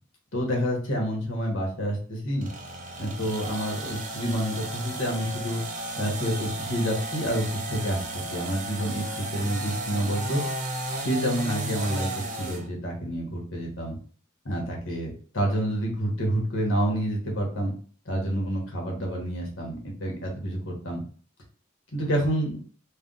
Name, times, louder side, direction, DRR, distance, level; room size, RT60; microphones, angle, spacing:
voice 1, 0.3-2.5 3.0-5.6 6.0-8.0 8.3-10.4 10.9-14.0 14.4-17.7 18.0-21.0 21.9-22.6, equal, 80° left, -1 dB, 1.4 m, -28 dB
sound 1, 2.4-12.7, right 2 dB, 40° right, 0.7 m, -34 dB
3.3 x 2.5 x 3.9 m, 0.43 s
head